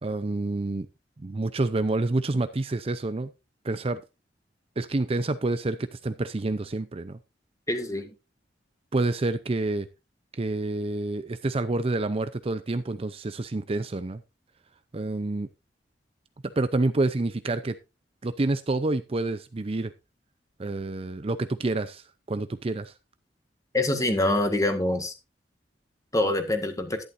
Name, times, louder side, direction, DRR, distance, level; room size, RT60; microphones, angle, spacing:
voice 1, 0.0-0.9 1.2-3.3 3.6-4.0 4.8-7.2 8.9-9.9 10.4-14.2 14.9-15.5 16.4-17.8 18.2-19.9 20.6-22.9, right 2 dB, 35° right, 0.5 m, -28 dB
voice 2, 7.7-8.1 23.7-25.1 26.1-27.0, left 1 dB, 20° left, 1.7 m, -25 dB
11.5 x 10.5 x 2.6 m
head